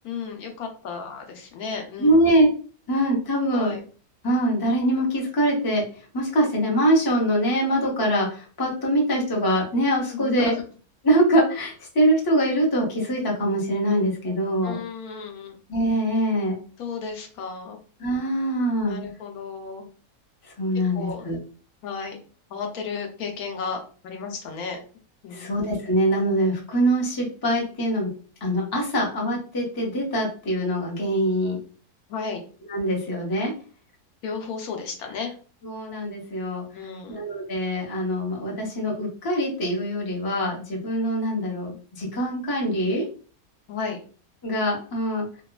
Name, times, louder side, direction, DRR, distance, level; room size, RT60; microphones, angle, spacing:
voice 1, 0.0-2.2 3.5-3.8 10.1-10.6 14.6-15.5 16.8-17.8 18.9-19.9 20.9-21.3 21.8-22.2 22.5-24.8 25.2-25.6 32.1-32.4 34.2-35.3 36.7-37.2 43.7-44.0, left 5 dB, 75° left, 3 dB, 1.1 m, -33 dB
voice 2, 2.0-2.5 2.9-3.7 4.2-5.8 6.1-10.5 11.0-14.8 15.7-16.6 18.0-19.0 20.6-21.4 25.3-28.1 28.4-31.6 32.7-33.5 35.6-36.6 37.1-43.0 44.4-45.3, right 1 dB, 25° left, -2 dB, 0.5 m, -23 dB
2.8 x 2.3 x 2.2 m, 0.39 s
omnidirectional pair, 1.6 m